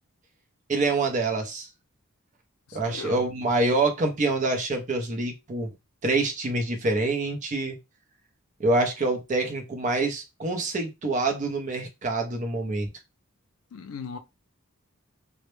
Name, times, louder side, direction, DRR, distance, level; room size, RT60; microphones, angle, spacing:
voice 1, 0.7-1.7 2.7-5.7 6.0-7.8 8.6-12.9, right 2 dB, 35° right, 0.5 m, -26 dB
voice 2, 2.7-3.3 13.7-14.2, left 5 dB, 80° left, 0.4 m, -38 dB
2.0 x 2.0 x 3.0 m
head